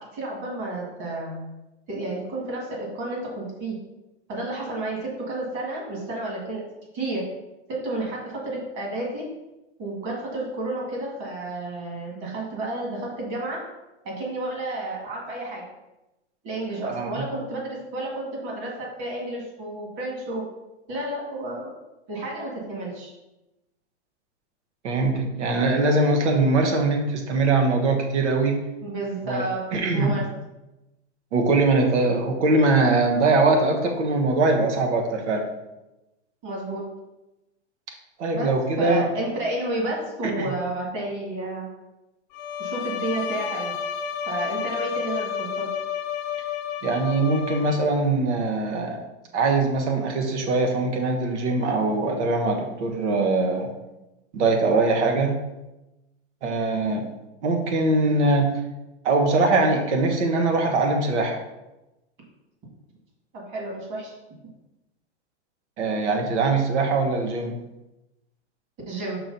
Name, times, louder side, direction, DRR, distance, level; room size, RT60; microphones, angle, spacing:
voice 1, 0.0-1.5 1.9-3.8 4.3-6.6 6.9-7.2 7.7-9.2 9.8-13.6 14.0-15.6 16.4-20.4 20.9-21.7 22.1-23.1 28.8-29.6 29.9-30.2 36.4-36.8 38.3-38.5 38.8-41.7 42.6-43.7 44.3-45.7 63.3-64.1 68.9-69.2, right 2 dB, 35° right, -2 dB, 2.0 m, -31 dB
voice 2, 16.8-17.2 24.8-28.6 29.2-29.4 29.7-30.2 31.3-35.5 38.2-39.1 40.2-40.5 46.8-49.0 49.3-53.7 54.3-55.4 56.4-57.1 57.4-58.6 59.0-61.4 65.8-67.6, right 3 dB, 80° right, 3 dB, 1.4 m, -22 dB
Bowed string instrument, 42.3-48.1, left 8 dB, 40° left, 0.5 m, -31 dB
6.1 x 3.1 x 5.3 m, 0.98 s
supercardioid pair, 150°, 34 cm